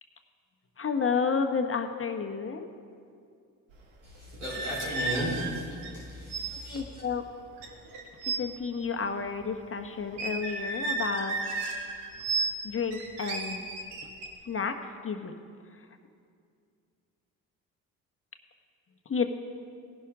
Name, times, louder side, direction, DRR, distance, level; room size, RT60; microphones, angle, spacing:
voice 1, 0.8-2.7 6.7-7.2 8.4-11.4 12.6-13.6 14.5-14.8 15.0-15.3 19.1-19.3, left 5 dB, 30° left, 6 dB, 1.2 m, -30 dB
voice 2, 4.0-6.8, equal, 90° right, -7 dB, 4.1 m, -35 dB
sound 1, 4.3-6.0 6.3-6.5 6.8-7.0 7.6-8.4 10.1-12.6 12.9-14.3, right 3 dB, 70° right, 1.7 m, -33 dB
18.0 x 11.0 x 3.7 m, 2.3 s
hypercardioid pair, 45°, 43 cm